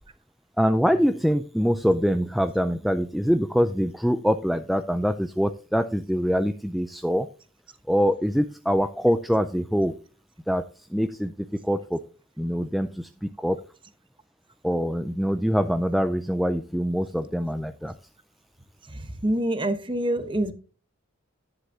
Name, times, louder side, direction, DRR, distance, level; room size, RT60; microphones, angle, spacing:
voice 1, 0.6-7.3 7.9-10.0 10.5-10.6 10.9-11.3 11.6-12.0 12.4-13.6 14.6-17.9, equal, ahead, 8 dB, 0.3 m, -24 dB
voice 2, 19.2-20.5, right 1 dB, 25° right, 10 dB, 1.0 m, -25 dB
11.5 x 9.8 x 2.7 m, 0.37 s
head